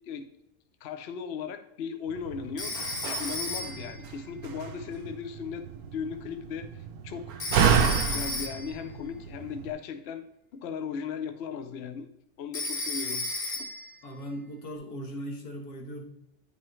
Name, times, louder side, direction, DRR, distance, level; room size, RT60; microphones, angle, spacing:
voice 1, 0.8-2.8 3.0-5.6 5.9-10.3 10.5-12.1 12.4-13.3 13.6-13.7, left 6 dB, 60° left, 8 dB, 0.7 m, -37 dB
Slam, 2.1-9.7, right 7 dB, 70° right, 1.1 m, -30 dB
Telephone, 2.6-4.0 7.4-8.8 12.5-13.9, left 2 dB, 30° left, 0.8 m, -33 dB
voice 2, 14.0-16.0, equal, 75° left, 2 dB, 1.8 m, -38 dB
9.7 x 5.4 x 3.1 m, 0.83 s
omnidirectional pair, 1.7 m